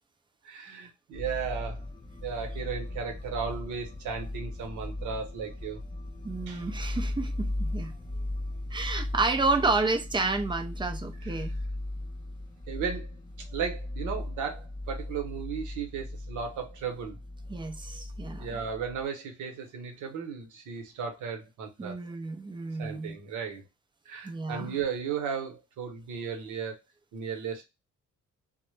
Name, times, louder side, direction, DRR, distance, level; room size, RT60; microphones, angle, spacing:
voice 1, 0.4-1.8 2.2-5.8 6.5-6.6 11.2-11.4 12.7-13.1 13.5-17.2 18.4-22.0 22.8-23.6 24.1-26.7 27.1-27.6, right 6 dB, 80° right, 0.8 m, -35 dB
sound 1, 1.1-19.0, left 1 dB, 15° left, 0.7 m, -37 dB
voice 2, 6.2-7.9 8.7-11.6 17.5-18.6 21.8-23.1 24.2-24.8, right 3 dB, 15° right, 0.4 m, -30 dB
2.1 x 2.0 x 3.1 m
cardioid pair, 90°, 30 cm